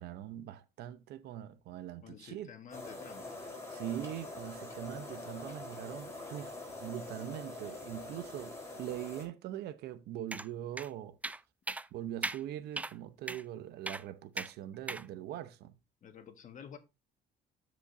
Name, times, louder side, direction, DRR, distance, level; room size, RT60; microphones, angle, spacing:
voice 1, 0.0-2.5 3.7-6.6 6.8-11.2 11.9-15.7, right 12 dB, 75° right, 0.8 m, -42 dB
voice 2, 2.0-3.4 16.0-16.8, left 7 dB, 50° left, 1.6 m, -50 dB
sound 1, 2.7-9.3, left 2 dB, 15° left, 4.0 m, -45 dB
sound 2, 10.3-10.5 10.8-10.9 11.2-11.4 11.7-11.9 12.2-12.4 12.8-12.9 13.3-13.4 13.9-14.0 14.4-14.5 14.9-15.0, right 2 dB, 10° right, 0.3 m, -37 dB
13.0 x 5.2 x 2.7 m
cardioid pair, 110°, 17 cm